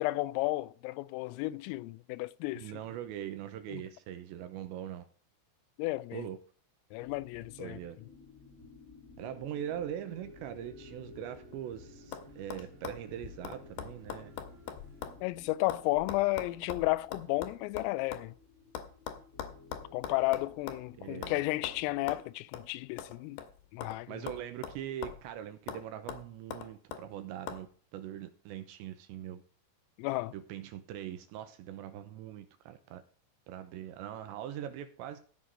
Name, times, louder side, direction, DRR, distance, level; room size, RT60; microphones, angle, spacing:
voice 1, 0.0-2.7 3.7-3.8 5.8-6.3 6.9-7.8 15.2-18.3 19.9-23.4 23.7-24.2 30.0-30.3, left 19 dB, 90° left, 3.3 m, -33 dB
voice 2, 2.5-5.1 6.1-6.4 7.6-8.0 9.2-14.3 21.0-21.4 24.1-29.4 30.3-33.0 33.5-35.2, right 11 dB, 80° right, 2.8 m, -42 dB
sound 1, 7.0-22.2, left 3 dB, 35° left, 1.2 m, -55 dB
sound 2, 10.1-15.1, right 1 dB, 55° right, 2.1 m, -57 dB
sound 3, 11.3-11.7 12.1-12.2 12.5-15.2 15.5-18.3 18.7-20.9 21.2-21.4 21.6-21.8 22.1-22.2 22.5-22.7 23.0-24.0 24.3-25.3 25.7-25.8 26.1-27.0 27.5-27.6, left 8 dB, 70° left, 2.8 m, -42 dB
15.5 x 5.9 x 4.8 m
omnidirectional pair, 5.8 m